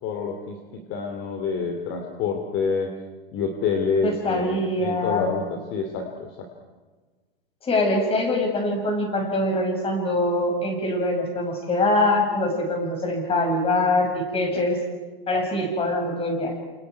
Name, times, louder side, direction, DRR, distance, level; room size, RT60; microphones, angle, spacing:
voice 1, 0.0-2.9 3.3-6.5, left 5 dB, 40° left, 4 dB, 2.8 m, -27 dB
voice 2, 4.0-5.3 7.6-14.8 15.3-16.5, left 2 dB, 20° left, 3 dB, 6.4 m, -23 dB
29.5 x 27.5 x 4.7 m, 1.3 s
hypercardioid pair, 135°, 30 cm